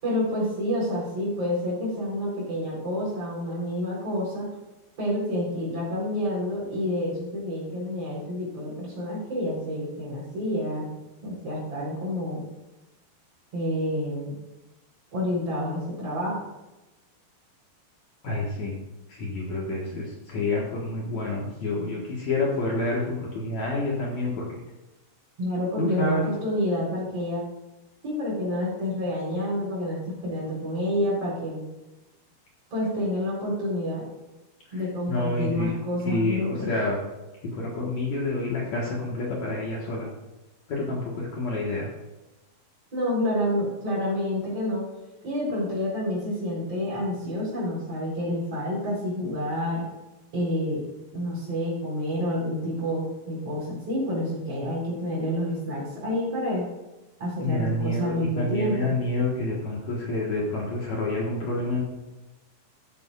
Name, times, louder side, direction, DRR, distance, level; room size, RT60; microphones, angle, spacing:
voice 1, 0.0-4.5 5.0-10.9 11.2-12.4 13.5-14.4 15.1-16.4 25.4-27.4 28.0-31.6 32.7-34.0 34.7-36.7 42.9-44.9 45.2-49.8 50.3-50.8 51.1-56.6 57.2-58.9, left 1 dB, 40° right, -5 dB, 5.1 m, -28 dB
voice 2, 18.2-18.8 19.1-24.5 25.8-26.2 34.7-35.8 36.0-37.0 37.5-40.1 40.7-41.9 57.4-61.8, left 2 dB, 55° left, -4 dB, 2.6 m, -28 dB
13.0 x 10.5 x 2.5 m, 1.0 s
omnidirectional pair, 4.4 m